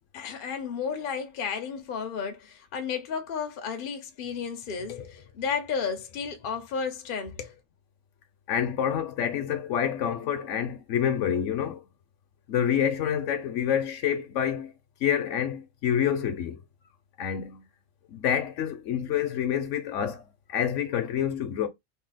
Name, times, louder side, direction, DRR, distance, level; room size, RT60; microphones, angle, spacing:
voice 1, 0.1-7.5, left 6 dB, 50° left, 0.7 m, -33 dB
voice 2, 8.5-11.8 12.5-14.7 15.0-16.6 17.2-17.6 18.1-20.2 20.5-21.7, left 9 dB, 75° left, 1.0 m, -27 dB
2.8 x 2.8 x 4.0 m
omnidirectional pair, 1.3 m